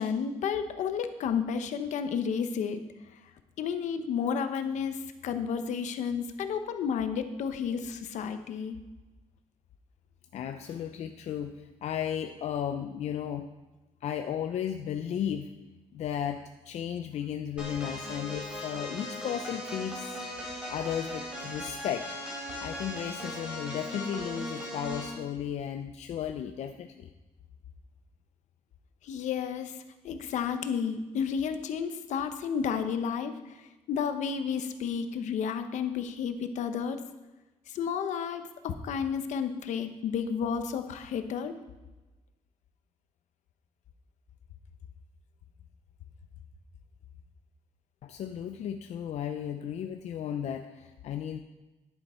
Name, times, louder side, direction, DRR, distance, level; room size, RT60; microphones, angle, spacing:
voice 1, 0.0-2.8 3.6-8.8 29.0-29.8 30.0-33.6 33.9-37.0 37.7-41.6, left 7 dB, 85° left, 8 dB, 0.9 m, -31 dB
voice 2, 10.3-13.5 14.0-15.5 15.9-20.2 20.7-22.2 22.6-27.1 48.0-51.4, left 9 dB, 65° left, 7 dB, 0.5 m, -34 dB
sound 1, 17.6-25.2, left 1 dB, 10° right, 3.9 m, -38 dB
10.5 x 9.8 x 4.4 m, 1.1 s
cardioid pair, 155°, 12 cm